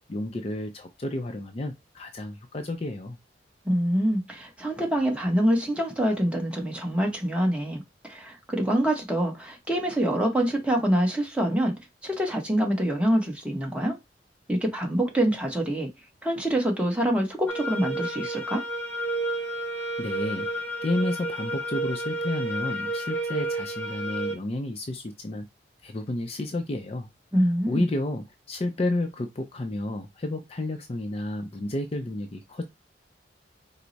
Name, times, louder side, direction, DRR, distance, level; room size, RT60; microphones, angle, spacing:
voice 1, 0.1-3.2 20.0-25.5 25.8-27.1 27.4-32.6, left 2 dB, 35° left, 0.4 m, -31 dB
voice 2, 3.6-11.7 12.0-14.0 14.5-15.9 16.2-18.6 27.3-27.9, right 1 dB, 5° right, 0.9 m, -25 dB
sound 1, 17.5-24.3, right 2 dB, 10° left, 1.2 m, -31 dB
4.5 x 2.0 x 3.9 m
head